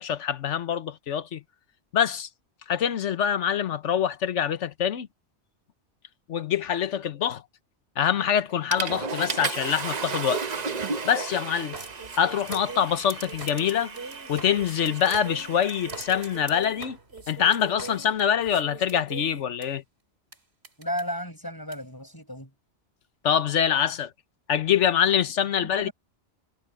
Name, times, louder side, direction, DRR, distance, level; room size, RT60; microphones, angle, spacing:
voice 1, 0.0-1.4 1.9-2.3 2.7-5.1 6.3-7.4 8.0-10.4 11.0-11.8 12.2-13.9 14.3-17.0 17.3-19.8 23.2-24.1 24.5-25.9, left 9 dB, 85° left, 1.3 m, -25 dB
Water / Toilet flush, 8.0-8.3 8.7-16.6, right 5 dB, 40° right, 0.9 m, -34 dB
sound 1, 11.7-19.7 20.3-20.4 20.6-21.0 21.7-21.8, right 3 dB, 60° right, 3.9 m, -41 dB
voice 2, 20.8-22.5 25.6-25.9, equal, 15° left, 7.3 m, -34 dB
omnidirectional pair, 1.2 m